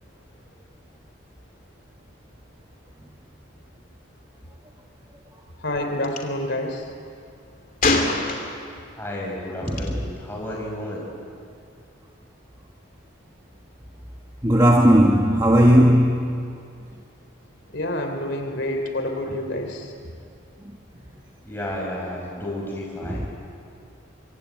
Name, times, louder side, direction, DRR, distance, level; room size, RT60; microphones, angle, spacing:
voice 1, 5.6-6.9 17.7-20.1, left 1 dB, 60° left, 3.2 m, -28 dB
Gunshot gunfire, 6.0-6.2 7.8-8.8 9.7-9.9, left 3 dB, 40° left, 2.9 m, -23 dB
voice 2, 9.0-11.0 21.5-23.3, left 1 dB, 10° left, 5.6 m, -32 dB
voice 3, 9.6-10.1 14.4-16.5 23.0-23.3, equal, 20° right, 1.4 m, -17 dB
25.0 x 24.5 x 9.3 m
head